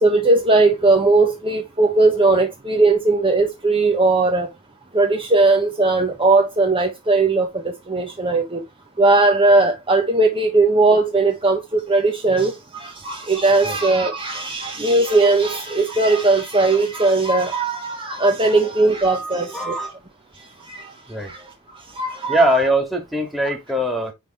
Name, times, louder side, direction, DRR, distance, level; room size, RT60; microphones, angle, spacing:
voice 1, 0.0-4.5 4.9-8.6 9.0-19.7 20.7-20.9 21.3-21.5 21.9-22.4, right 3 dB, 25° right, 1.3 m, -18 dB
voice 2, 19.1-20.0 21.1-21.3 22.3-24.1, right 1 dB, ahead, 2.1 m, -22 dB
9.9 x 3.8 x 3.2 m
head